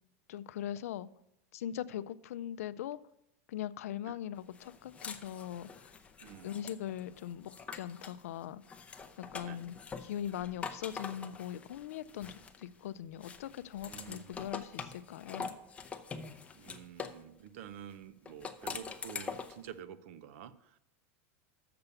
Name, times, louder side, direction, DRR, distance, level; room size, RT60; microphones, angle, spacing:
voice 1, 0.3-1.1 1.5-3.0 3.5-5.9 6.4-8.6 9.2-15.5, left 11 dB, 85° left, 15 dB, 0.4 m, -41 dB
sound 1, 4.5-8.2 8.6-12.8 13.2-17.2 18.3-19.7, left 5 dB, 15° left, 0.6 m, -44 dB
voice 2, 6.2-6.6 9.4-9.6 13.8-14.5 16.5-20.8, right 10 dB, 65° right, 14 dB, 0.6 m, -49 dB
6.8 x 6.8 x 7.0 m, 0.80 s
supercardioid pair, 140°, 8 cm